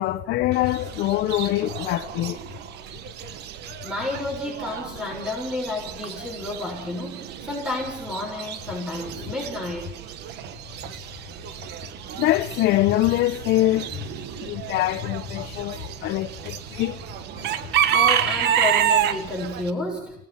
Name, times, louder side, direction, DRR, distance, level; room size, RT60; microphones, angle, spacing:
voice 1, 0.0-2.4 12.2-13.9 14.4-17.0 17.4-17.5, left 15 dB, 80° left, 0.8 m, -24 dB
Chicken rooster / Bird, 0.5-19.7, right 9 dB, 80° right, 1.3 m, -29 dB
voice 2, 3.8-9.9 17.9-20.1, left 2 dB, 5° right, 6.7 m, -31 dB
26.5 x 18.0 x 5.8 m
cardioid pair, 110°, 17 cm